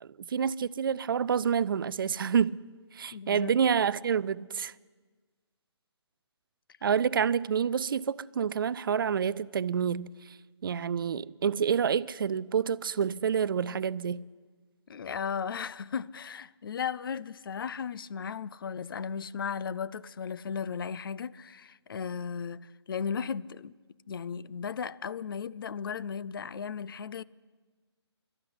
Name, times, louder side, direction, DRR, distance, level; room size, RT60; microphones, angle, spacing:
voice 1, 0.0-2.6 2.9-4.7 6.8-10.4 10.6-14.2, right 7 dB, 50° right, 0.4 m, -28 dB
voice 2, 3.1-3.5 14.9-23.7 24.1-27.2, left 6 dB, 50° left, 0.4 m, -36 dB
12.5 x 11.5 x 9.6 m
figure-of-eight pair, 150°, 15 cm